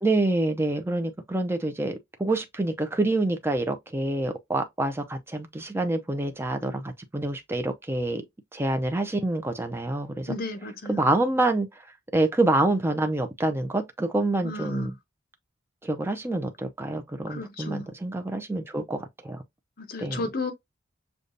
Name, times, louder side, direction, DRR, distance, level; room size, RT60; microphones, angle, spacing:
voice 1, 0.0-8.2 8.5-10.4 10.9-11.9 12.1-14.9 15.8-19.4 20.0-20.2, right 2 dB, 10° right, 0.5 m, -27 dB
voice 2, 10.3-11.0 14.4-14.9 17.3-17.9 19.8-20.5, left 2 dB, 50° left, 0.8 m, -33 dB
6.5 x 2.3 x 2.6 m
head